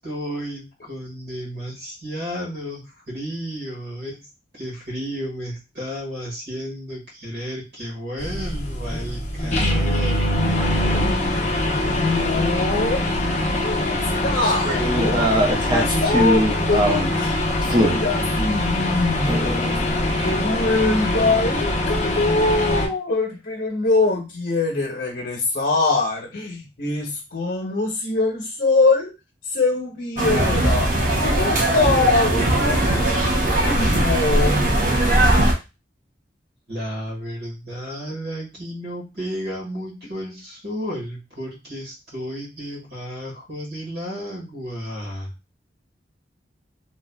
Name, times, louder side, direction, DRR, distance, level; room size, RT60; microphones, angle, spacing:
voice 1, 0.0-4.2 4.5-10.3 33.7-34.0 36.7-45.3, equal, 80° right, -4 dB, 1.8 m, -32 dB
sound 1, 8.2-22.9, left 1 dB, 40° left, 0.6 m, -23 dB
voice 2, 11.7-13.0 13.5-15.3 15.5-17.3 17.8-29.1 29.5-30.9 31.2-33.1 33.6-34.8, left 3 dB, 65° left, -1 dB, 0.9 m, -23 dB
sound 2, 14.4-17.1 17.6-18.0 19.3-20.4, equal, 25° right, 0.6 m, -22 dB
sound 3, 30.2-35.5, right 1 dB, 45° right, 0.9 m, -19 dB
3.3 x 2.4 x 2.2 m, 0.26 s
head